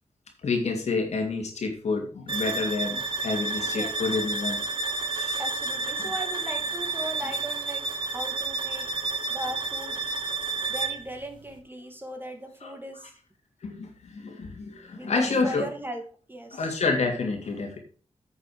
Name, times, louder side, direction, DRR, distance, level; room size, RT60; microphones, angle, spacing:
voice 1, 0.4-4.6 5.1-5.4 6.0-6.1 12.6-12.7 13.6-15.6 16.5-17.8, left 3 dB, 80° left, 2 dB, 2.7 m, -29 dB
sound 1, 2.3-11.1, right 3 dB, 45° right, 2.3 m, -30 dB
voice 2, 3.6-3.9 5.4-8.9 9.3-10.0 10.7-13.1 14.9-16.0 16.3-16.6, right 1 dB, 20° right, 4 dB, 2.4 m, -38 dB
8.8 x 6.7 x 5.0 m, 0.40 s
cardioid pair, 70°, 11 cm